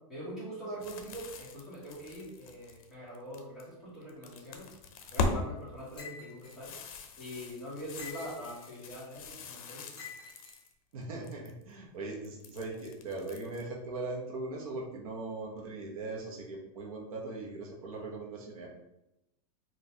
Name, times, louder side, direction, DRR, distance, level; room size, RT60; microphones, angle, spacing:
voice 1, 0.1-4.7 5.1-6.7 7.2-9.9, equal, ahead, -10 dB, 1.2 m, -43 dB
sound 1, 0.8-3.6 4.0-5.4 5.8-10.7 11.0-11.6 12.2-13.6, left 3 dB, 75° left, 0.6 m, -40 dB
sound 2, 6.0-6.6 8.0-8.6 10.0-10.5, left 5 dB, 20° left, 1.1 m, -47 dB
voice 2, 10.9-18.7, right 3 dB, 75° right, -1 dB, 0.9 m, -40 dB
4.0 x 2.4 x 2.7 m, 0.88 s
supercardioid pair, 165°, 18 cm